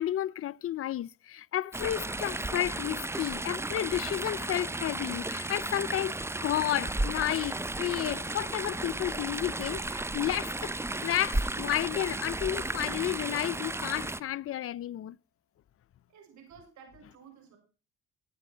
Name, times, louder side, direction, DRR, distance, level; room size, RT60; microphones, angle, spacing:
voice 1, 0.0-10.7 11.0-15.2, left 12 dB, 50° left, 0.5 m, -32 dB
Chatter / Stream, 1.7-14.2, right 2 dB, 10° right, 0.7 m, -34 dB
voice 2, 16.1-17.6, right 7 dB, 70° right, 6.6 m, -53 dB
16.0 x 9.3 x 4.4 m
supercardioid pair, 75°, 30 cm